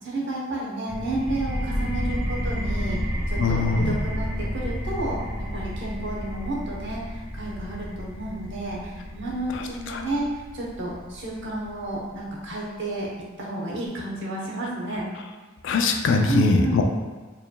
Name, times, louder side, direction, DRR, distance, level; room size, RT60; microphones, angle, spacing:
voice 1, 0.0-3.0 3.3-5.2 5.5-13.1 13.4-15.0 16.3-16.8, right 2 dB, 60° right, -4 dB, 0.9 m, -31 dB
sound 1, 0.9-12.3, equal, 15° right, 0.8 m, -31 dB
voice 2, 3.4-4.0 9.5-10.0 15.6-16.8, left 3 dB, 65° left, 4 dB, 0.4 m, -22 dB
4.7 x 3.2 x 2.2 m, 1.3 s
head